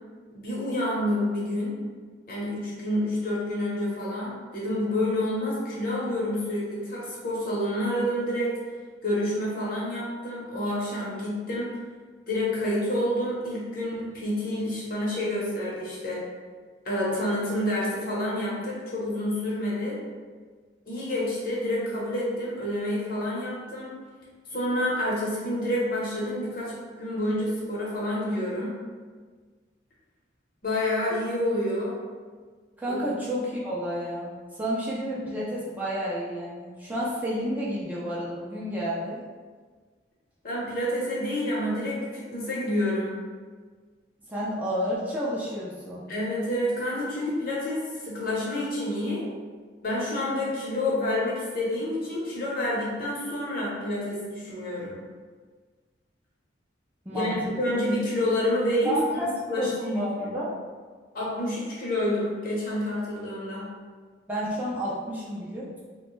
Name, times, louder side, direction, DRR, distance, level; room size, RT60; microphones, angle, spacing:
voice 1, 0.3-1.8 2.3-8.5 9.0-11.8 12.3-16.2 16.8-20.0 20.9-23.9 24.5-28.7 30.6-32.0 32.9-33.0 40.4-43.1 46.1-49.2 49.8-55.0 57.1-60.4 61.1-63.7, left 1 dB, 50° left, -6 dB, 0.8 m, -28 dB
voice 2, 32.8-39.2 44.3-46.0 57.1-57.5 58.8-60.5 64.3-65.8, equal, 10° right, -7 dB, 0.4 m, -30 dB
2.9 x 2.1 x 3.1 m, 1.5 s
head